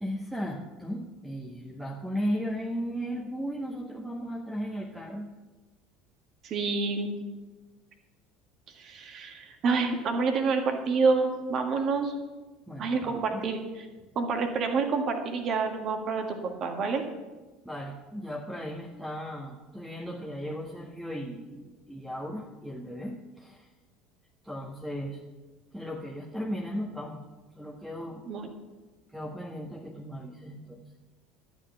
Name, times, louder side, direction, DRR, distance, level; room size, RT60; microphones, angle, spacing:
voice 1, 0.0-5.3 12.7-13.4 17.7-23.7 24.4-25.2 25.7-27.2 27.6-28.2 29.1-30.8, equal, 5° right, -2 dB, 1.6 m, -36 dB
voice 2, 6.4-7.2 8.8-12.1 12.8-13.6 14.2-17.0 28.3-28.5, right 4 dB, 45° right, 4 dB, 1.8 m, -28 dB
12.5 x 7.3 x 7.0 m, 1.2 s
figure-of-eight pair, 65°, 0 cm